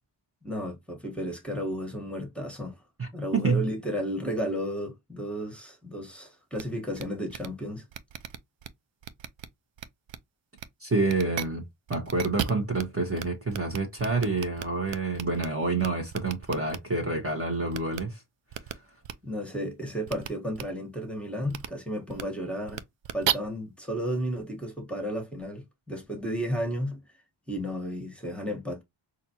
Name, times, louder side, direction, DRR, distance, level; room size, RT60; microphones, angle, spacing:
voice 1, 0.4-2.8 3.1-7.8 19.2-22.8 23.1-27.0 27.5-28.8, equal, ahead, 1.3 m, -33 dB
voice 2, 3.0-3.6 10.8-18.2, right 3 dB, 30° right, 1.1 m, -28 dB
sound 1, 6.5-6.6 7.0-7.1 7.3-7.5 7.9-8.7 9.0-9.5 9.8-10.2 10.6-10.7 11.0-11.4 11.9-12.8 13.2-13.3 13.5-15.5 15.8-16.8 17.7-18.0 18.5-18.7 19.0-19.1 20.1-20.3 20.5-20.6 21.5-21.7 22.1-22.2 22.7-23.3, right 10 dB, 65° right, 0.5 m, -33 dB
4.2 x 2.6 x 2.8 m
wide cardioid pair, 110°, 48 cm